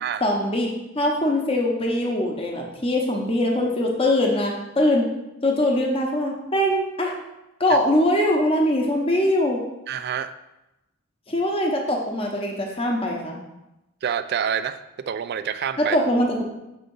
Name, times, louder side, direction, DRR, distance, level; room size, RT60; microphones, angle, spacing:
voice 1, 0.2-5.1 5.4-7.1 7.6-9.6 11.3-13.4 15.8-16.4, left 1 dB, 25° left, 0 dB, 0.9 m, -22 dB
voice 2, 9.9-10.3 14.0-16.0, right 8 dB, 45° right, 12 dB, 0.3 m, -27 dB
6.8 x 3.7 x 5.4 m, 0.95 s
head